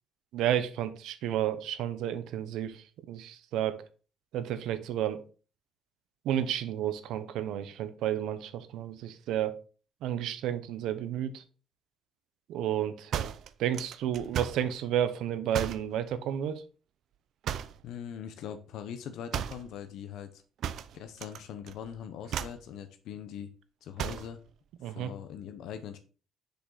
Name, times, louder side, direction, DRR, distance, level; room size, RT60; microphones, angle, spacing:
voice 1, 0.3-3.8 4.3-5.2 6.2-9.6 10.0-11.4 12.5-13.3 13.6-16.6 24.8-25.1, right 10 dB, 85° right, 0.8 m, -31 dB
sound 1, 13.1-14.7 15.5-15.9 17.4-17.9 19.3-19.7 20.6-21.4 21.7-21.9 22.3-22.7 24.0-24.4, right 9 dB, 65° right, 0.5 m, -35 dB
voice 2, 17.8-20.4 20.9-23.5 23.8-24.4 24.8-26.0, left 8 dB, 80° left, 0.8 m, -41 dB
6.7 x 5.3 x 3.9 m
cardioid pair, 125°, 0 cm